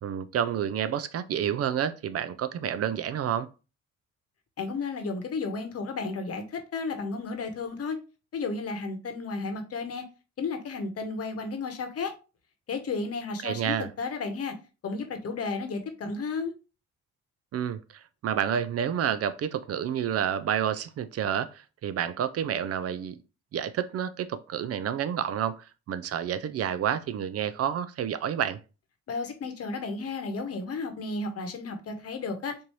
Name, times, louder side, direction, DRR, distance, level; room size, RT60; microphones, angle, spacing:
voice 1, 0.0-3.5 13.4-13.9 17.5-17.8 18.2-23.2 23.5-28.6, right 9 dB, 55° right, 0.4 m, -29 dB
voice 2, 4.6-8.0 8.3-10.1 10.4-12.1 12.7-14.6 14.8-16.5 29.1-32.6, left 4 dB, 50° left, 1.0 m, -33 dB
4.3 x 2.7 x 3.1 m
cardioid pair, 90°, 30 cm